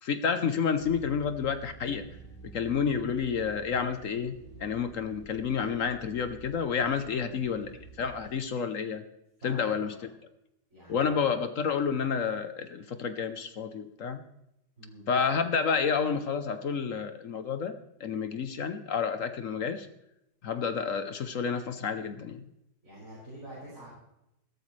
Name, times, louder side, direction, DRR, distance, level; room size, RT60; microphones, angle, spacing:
voice 1, 0.0-2.1 2.5-7.7 8.0-9.0 9.4-9.9 10.9-14.2 15.1-17.7 18.0-19.9 20.4-22.4, left 6 dB, 55° left, 10 dB, 1.1 m, -30 dB
sound 1, 0.8-8.3, right 4 dB, 35° left, 4.7 m, -50 dB
voice 2, 7.0-7.6 9.4-10.0 10.7-11.2 14.8-15.0 22.8-23.9, right 1 dB, 50° right, -9 dB, 6.9 m, -47 dB
16.0 x 13.5 x 3.3 m, 0.83 s
omnidirectional pair, 1.8 m